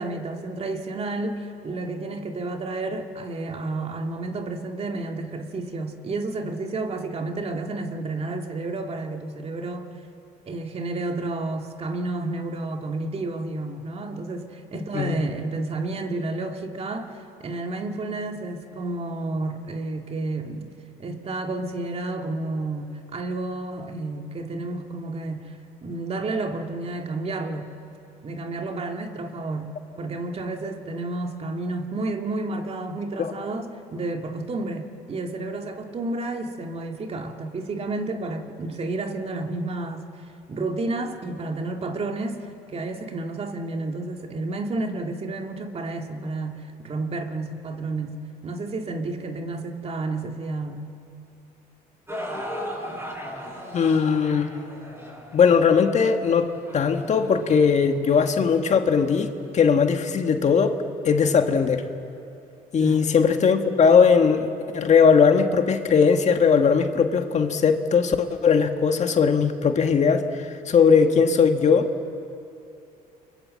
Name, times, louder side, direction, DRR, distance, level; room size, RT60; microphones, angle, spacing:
voice 1, 0.0-9.9 10.5-20.7 21.0-25.6 25.8-27.7 28.2-42.4 42.7-50.9 62.8-63.1, right 2 dB, 35° right, 4 dB, 2.3 m, -31 dB
voice 2, 14.7-15.2 53.7-54.5 55.3-59.3 59.5-60.8 61.0-61.8 62.7-64.5 64.7-71.9, left 6 dB, 45° left, 6 dB, 1.7 m, -19 dB
sound 1, 52.1-58.3 59.0-59.1 59.8-59.9, equal, 15° right, 7.7 m, -37 dB
29.0 x 23.0 x 7.7 m, 2.6 s
cardioid pair, 110°, 17 cm